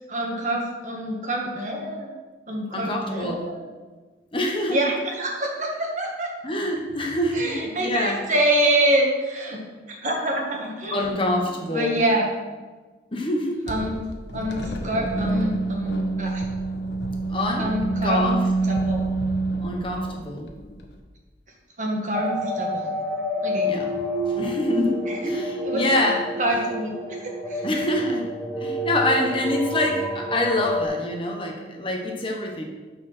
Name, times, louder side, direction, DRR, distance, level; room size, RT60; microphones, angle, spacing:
voice 1, 0.1-2.1 2.5-3.6 4.7-6.3 7.3-9.6 10.0-11.1 11.7-12.3 13.7-14.0 14.3-16.4 17.6-18.3 18.7-19.1 21.8-22.9 23.4-23.7 25.1-25.3 25.6-25.9 26.4-26.9 27.2-27.6, right 1 dB, 45° right, 0 dB, 1.6 m, -26 dB
voice 2, 2.7-3.4 4.3-4.8 6.4-8.2 10.9-12.0 13.1-13.6 17.3-17.7 18.0-18.4 19.6-20.5 23.7-23.9 24.3-26.2 27.6-28.3 28.6-32.6, left 1 dB, 30° left, 1 dB, 1.1 m, -25 dB
sound 1, 13.7-21.0, right 3 dB, 75° left, 1.1 m, -27 dB
sound 2, 22.1-30.8, equal, ahead, 1.1 m, -29 dB
9.3 x 4.7 x 6.1 m, 1.3 s
head